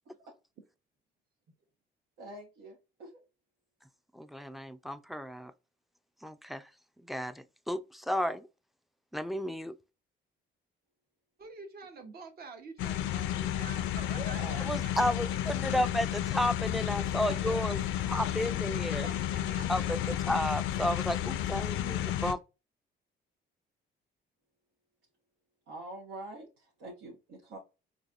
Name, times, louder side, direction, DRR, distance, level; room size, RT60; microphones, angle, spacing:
voice 1, 2.2-3.2 14.1-14.6 25.7-27.6, right 1 dB, 85° right, 1.0 m, -45 dB
voice 2, 4.1-5.5 6.2-6.7 7.1-8.5 9.1-9.7 14.7-17.8 18.1-19.1 19.7-20.0 20.3-22.4, left 1 dB, ahead, 0.3 m, -32 dB
voice 3, 11.4-15.9 17.3-17.6 19.0-20.3, right 4 dB, 50° right, 1.0 m, -48 dB
sound 1, 12.8-22.3, left 11 dB, 85° left, 0.4 m, -32 dB
4.0 x 2.6 x 2.4 m
cardioid pair, 90°, 20 cm